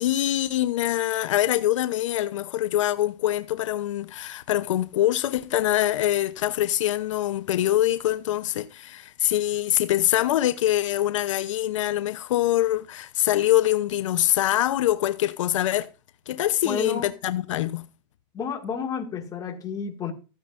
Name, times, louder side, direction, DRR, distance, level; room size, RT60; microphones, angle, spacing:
voice 1, 0.0-15.9 16.3-17.8, left 13 dB, 85° left, 0.8 m, -24 dB
voice 2, 16.6-17.1 18.3-20.1, left 6 dB, 25° left, 2.1 m, -31 dB
14.5 x 9.2 x 2.6 m
supercardioid pair, 145°, 16 cm